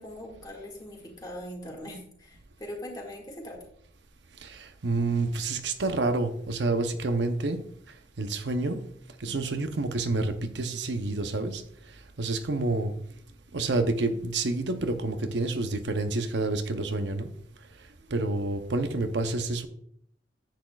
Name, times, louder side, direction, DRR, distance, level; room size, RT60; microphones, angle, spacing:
voice 1, 0.0-3.6, left 1 dB, 20° left, -1 dB, 2.0 m, -41 dB
voice 2, 4.4-7.6 8.2-8.8 9.2-11.6 12.2-12.9 13.5-17.3 18.1-19.7, right 2 dB, 75° right, 7 dB, 0.8 m, -28 dB
10.0 x 8.4 x 2.4 m, 0.67 s
head